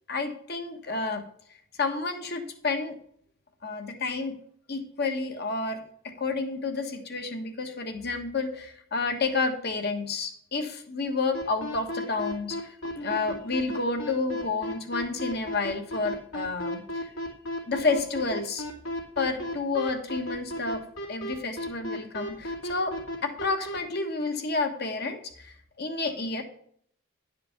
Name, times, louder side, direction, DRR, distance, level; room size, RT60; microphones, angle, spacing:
voice 1, 0.1-1.2 1.8-3.0 3.6-4.4 4.7-16.8 17.7-23.0 23.2-26.4, left 3 dB, 50° left, 6 dB, 1.3 m, -30 dB
sound 1, 11.3-23.8, left 1 dB, 80° left, 2.4 m, -33 dB
10.5 x 5.1 x 5.8 m, 0.64 s
head